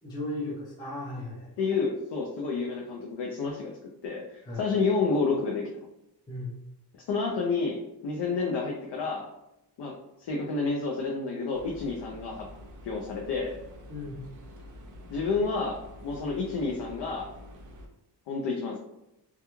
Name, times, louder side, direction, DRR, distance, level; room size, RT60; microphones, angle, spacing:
voice 1, 0.0-1.5 4.4-4.7 6.3-6.6 13.9-14.2, left 1 dB, 10° left, -6 dB, 0.6 m, -36 dB
voice 2, 1.6-3.7 4.0-5.9 7.1-9.3 9.8-12.5 12.8-13.5 15.1-17.3 18.3-18.8, left 4 dB, 75° left, 0 dB, 0.5 m, -30 dB
sound 1, 11.5-17.9, left 1 dB, 50° right, 0.5 m, -47 dB
2.3 x 2.2 x 2.9 m, 0.86 s
wide cardioid pair, 155°, 42 cm